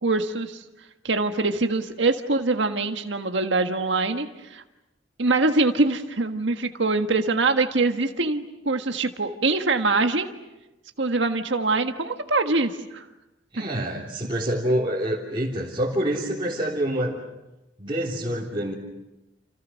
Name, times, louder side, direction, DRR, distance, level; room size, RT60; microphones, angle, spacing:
voice 1, 0.0-0.6 1.0-4.6 5.2-10.3 11.0-13.0, right 3 dB, 70° right, 6 dB, 1.6 m, -24 dB
voice 2, 13.5-17.2 17.8-18.7, right 1 dB, 25° right, -6 dB, 3.5 m, -26 dB
30.0 x 29.0 x 6.4 m, 0.99 s
head